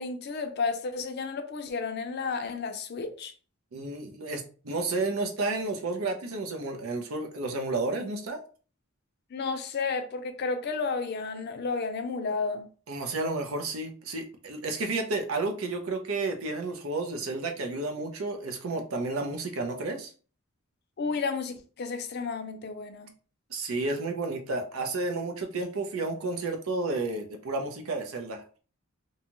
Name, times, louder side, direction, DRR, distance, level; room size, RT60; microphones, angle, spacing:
voice 1, 0.0-3.3 9.3-12.7 21.0-23.1, left 4 dB, 50° left, 0.4 m, -32 dB
voice 2, 3.7-8.4 12.9-20.1 23.5-28.4, right 3 dB, 80° right, 0.6 m, -31 dB
2.7 x 2.3 x 2.9 m
head